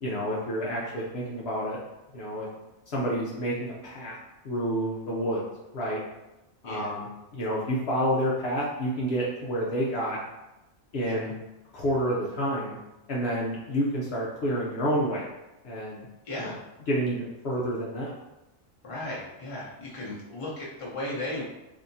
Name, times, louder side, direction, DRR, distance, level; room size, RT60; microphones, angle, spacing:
voice 1, 0.0-1.8 2.1-2.5 2.9-4.2 4.4-5.4 5.7-6.0 6.6-10.2 10.9-11.3 11.7-12.8 13.1-15.2 15.6-16.1 16.4-16.6 16.9-18.1, equal, 65° left, -5 dB, 0.9 m, -29 dB
voice 2, 16.3-16.6 18.8-21.4, left 1 dB, 30° left, -6 dB, 0.8 m, -36 dB
3.4 x 2.8 x 2.7 m, 0.96 s
omnidirectional pair, 1.3 m